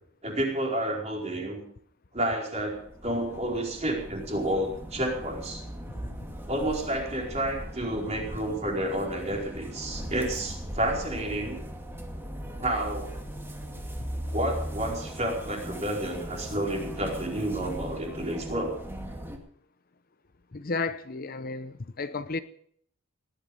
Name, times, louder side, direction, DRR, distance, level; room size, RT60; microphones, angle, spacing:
voice 1, 0.2-1.6 2.1-5.6 6.5-11.6 12.6-13.1 14.3-18.8, right 1 dB, 30° right, 4.7 m, -30 dB
sound 1, 2.6-19.4, equal, 10° right, 2.3 m, -39 dB
voice 2, 20.5-22.4, left 3 dB, 45° left, 0.7 m, -32 dB
18.0 x 12.0 x 5.5 m
head